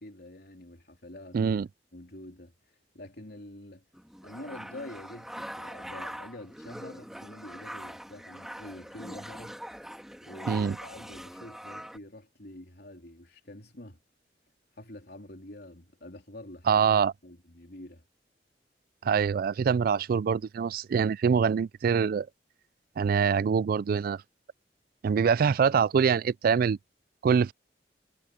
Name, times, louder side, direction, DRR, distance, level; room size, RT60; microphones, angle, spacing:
voice 1, 0.0-1.5 1.9-2.5 2.9-3.8 4.2-9.6 10.2-14.0 14.8-16.8 17.2-18.0, left 1 dB, 60° left, 3.5 m, -46 dB
voice 2, 1.3-1.7 10.5-10.8 16.7-17.1 19.0-22.3 23.0-24.2 25.0-26.8 27.2-27.5, right 6 dB, 55° right, 0.3 m, -24 dB
sound 1, 3.9-12.0, equal, ahead, 2.3 m, -42 dB
head